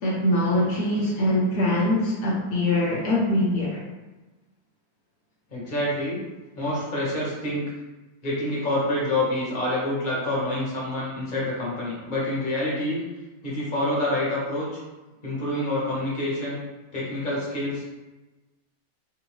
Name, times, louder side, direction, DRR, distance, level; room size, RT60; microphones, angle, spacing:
voice 1, 0.0-3.8, left 1 dB, 80° left, -4 dB, 0.5 m, -23 dB
voice 2, 5.5-6.2 6.6-7.7 8.2-13.0 13.4-14.8 15.2-16.6 16.9-17.8, left 1 dB, 35° left, -6 dB, 0.9 m, -27 dB
3.4 x 2.6 x 3.1 m, 1.1 s
omnidirectional pair, 1.9 m